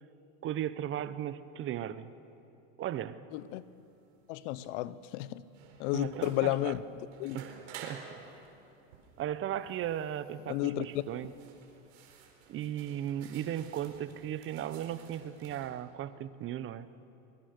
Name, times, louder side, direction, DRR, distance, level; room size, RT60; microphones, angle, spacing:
voice 1, 0.4-2.1 2.8-3.3 5.9-6.7 7.3-8.2 9.2-11.3 12.5-16.9, right 11 dB, 35° right, 0.8 m, -36 dB
voice 2, 3.3-3.6 4.3-5.4 5.8-6.8 7.2-7.4 10.5-11.0, left 16 dB, 65° left, 0.9 m, -32 dB
sound 1, 3.3-15.7, right 6 dB, 85° right, 4.3 m, -53 dB
24.5 x 22.5 x 6.6 m
supercardioid pair, 130°, 37 cm